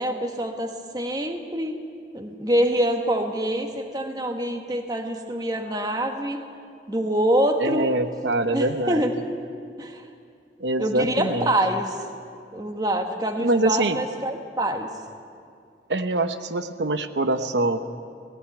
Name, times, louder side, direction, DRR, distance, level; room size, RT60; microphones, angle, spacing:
voice 1, 0.0-1.7 2.1-6.4 6.9-7.9 8.5-9.1 9.8-10.0 10.8-12.0 12.5-14.9, right 1 dB, 20° right, 4 dB, 1.4 m, -25 dB
voice 2, 7.6-9.1 10.6-11.5 13.4-14.0 15.9-17.8, right 2 dB, 85° right, 8 dB, 0.9 m, -24 dB
18.0 x 17.0 x 9.2 m, 2.4 s
head